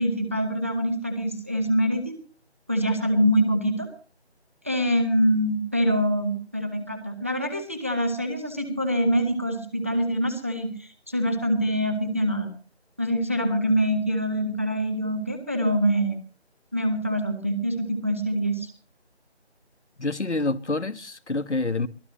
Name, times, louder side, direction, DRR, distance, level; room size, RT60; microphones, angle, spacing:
voice 1, 0.0-2.1 2.7-3.9 4.6-12.5 13.0-16.2 16.7-18.7, equal, 10° right, 0.9 m, -25 dB
voice 2, 20.0-21.9, left 2 dB, 85° left, 1.2 m, -27 dB
23.0 x 15.5 x 3.0 m
figure-of-eight pair, 165°, 34 cm